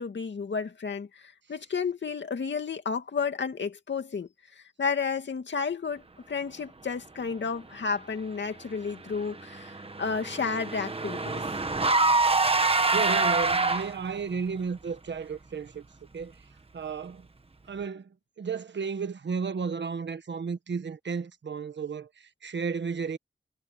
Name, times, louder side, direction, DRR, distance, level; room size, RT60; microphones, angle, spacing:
voice 1, 0.0-4.3 4.6-6.0 6.3-11.4, left 5 dB, 75° left, 2.4 m, -32 dB
Car / Engine, 9.1-14.2, right 3 dB, 30° right, 1.4 m, -26 dB
voice 2, 12.9-15.8 16.1-16.3 16.7-17.3 17.7-18.1 18.4-23.2, right 5 dB, 75° right, 1.4 m, -33 dB
wide cardioid pair, 100°, 19 cm